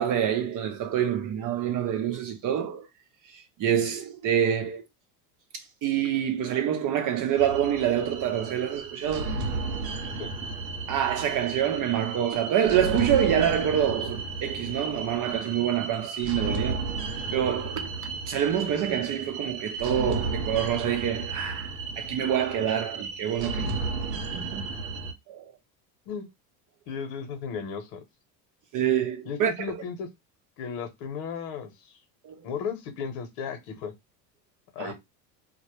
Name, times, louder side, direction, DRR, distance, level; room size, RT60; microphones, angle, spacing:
voice 1, 0.0-2.9 3.3-4.8 5.5-9.4 10.9-16.8 17.3-17.9 18.3-23.8 24.1-24.7 25.3-25.5 28.7-29.5 32.2-32.4 34.8-34.9, right 9 dB, 40° right, 0.7 m, -26 dB
sound 1, 7.4-25.1, right 3 dB, 90° right, 0.7 m, -33 dB
voice 2, 26.9-28.0 29.2-30.1 30.6-31.9 32.4-33.9 34.7-34.9, left 6 dB, 65° left, 1.0 m, -35 dB
2.2 x 2.0 x 3.0 m
hypercardioid pair, 85°, 50 cm